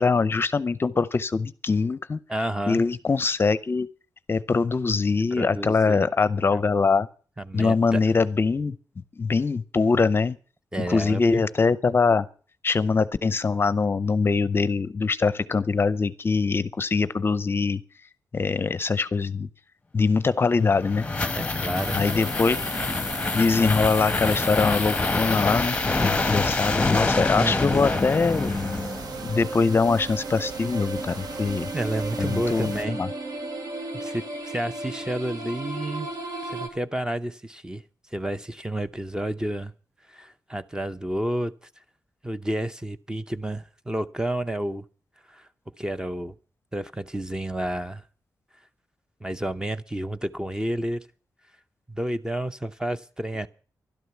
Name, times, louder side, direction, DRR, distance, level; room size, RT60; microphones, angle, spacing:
voice 1, 0.0-2.2 2.7-3.9 4.3-7.1 7.5-8.7 9.2-10.4 10.9-12.3 12.6-17.8 18.3-19.5 19.9-21.1 21.9-22.6 23.3-28.5 29.2-31.7 32.2-33.1, left 4 dB, 35° left, 0.6 m, -23 dB
voice 2, 2.3-2.8 5.3-6.1 6.5-6.6 7.4-8.1 10.7-11.4 21.4-22.0 23.6-23.7 27.0-27.6 31.7-33.0 33.9-36.1 36.4-37.8 38.1-39.7 40.1-41.5 42.2-44.9 45.3-45.5 45.8-46.3 46.7-48.0 49.2-51.1 51.9-53.5, right 1 dB, 10° right, 0.7 m, -30 dB
sound 1, 20.5-29.3, left 3 dB, 20° left, 1.0 m, -26 dB
sound 2, 21.7-32.8, right 5 dB, 85° right, 1.0 m, -41 dB
sound 3, 27.7-36.7, right 2 dB, 60° right, 2.6 m, -35 dB
13.0 x 12.0 x 7.1 m
wide cardioid pair, 120°, 7 cm